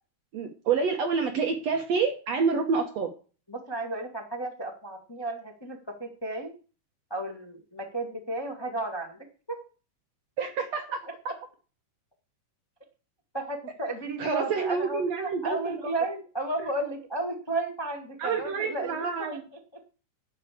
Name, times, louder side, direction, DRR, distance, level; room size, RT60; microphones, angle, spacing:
voice 1, 0.3-3.1 10.4-11.0 14.2-15.8 18.2-19.4, right 5 dB, 65° right, 4 dB, 1.7 m, -28 dB
voice 2, 3.5-6.5 7.1-9.2 9.5-9.6 13.3-19.4, right 2 dB, 30° left, 2 dB, 0.4 m, -33 dB
11.5 x 4.8 x 8.4 m, 0.36 s
omnidirectional pair, 4.4 m